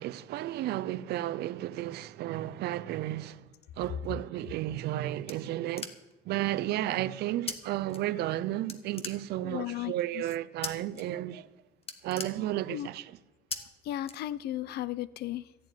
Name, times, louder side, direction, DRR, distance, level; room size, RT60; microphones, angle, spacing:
voice 1, 0.0-3.5 3.8-5.9 6.2-11.5 12.0-13.2 13.5-13.7, right 14 dB, 75° right, 0.6 m, -33 dB
sound 1, 4.6-6.3 7.5-7.6 7.9-8.4 8.7-9.6 10.6-11.0 11.4-11.5 11.8-12.9 13.5-13.6 14.0-14.7, left 5 dB, 35° left, 1.4 m, -40 dB
voice 2, 9.4-10.2 12.7-12.9 13.8-15.5, left 13 dB, 70° left, 0.6 m, -35 dB
13.5 x 7.2 x 9.3 m
cardioid pair, 110°, 17 cm